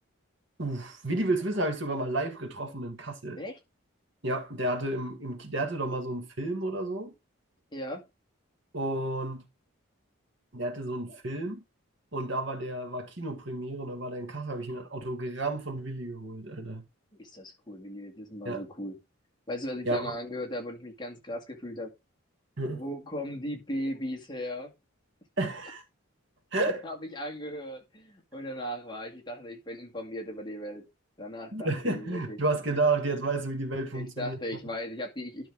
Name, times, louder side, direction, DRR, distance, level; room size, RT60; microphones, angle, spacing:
voice 1, 0.6-3.4 4.2-7.1 8.7-9.4 10.5-11.6 12.1-16.8 18.4-18.6 19.8-20.1 22.6-22.8 25.4-25.8 26.5-26.8 31.5-34.4, right 2 dB, 60° right, 1.9 m, -31 dB
voice 2, 7.7-8.1 17.1-19.0 19.5-21.9 22.7-24.7 25.4-25.5 26.8-30.9 31.2-32.4 33.9-35.5, equal, 20° left, 2.2 m, -37 dB
12.0 x 5.7 x 3.6 m
head